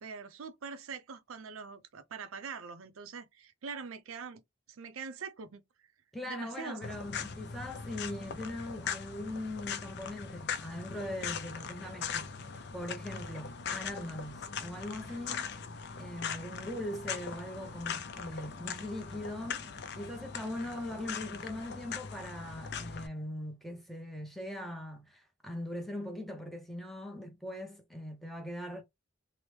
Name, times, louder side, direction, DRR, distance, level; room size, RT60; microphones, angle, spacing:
voice 1, 0.0-4.4 4.7-5.6 6.3-6.9, right 5 dB, 85° right, 0.5 m, -43 dB
voice 2, 6.1-12.3 12.7-15.5 16.0-28.8, left 1 dB, ahead, 0.5 m, -41 dB
sound 1, 6.8-23.1, left 6 dB, 55° left, 0.4 m, -40 dB
2.9 x 2.0 x 3.1 m
head